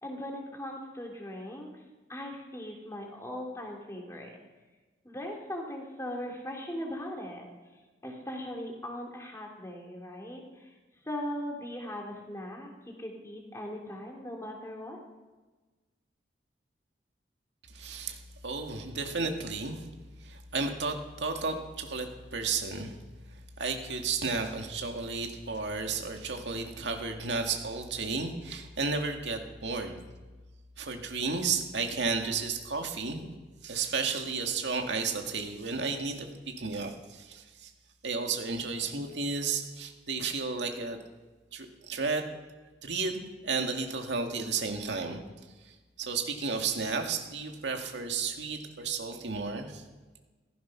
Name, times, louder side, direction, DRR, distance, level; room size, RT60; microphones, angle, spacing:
voice 1, 0.0-1.7 2.1-4.4 5.0-7.5 8.0-10.7 11.0-12.7 13.0-15.0, left 1 dB, 15° left, 0 dB, 2.7 m, -39 dB
voice 2, 17.7-19.9 20.2-23.0 23.3-30.1 30.8-33.3 33.6-37.7 38.0-41.0 41.5-42.2 42.8-45.2 45.6-49.8, right 4 dB, 85° right, 4 dB, 2.0 m, -33 dB
16.0 x 14.0 x 5.8 m, 1.2 s
head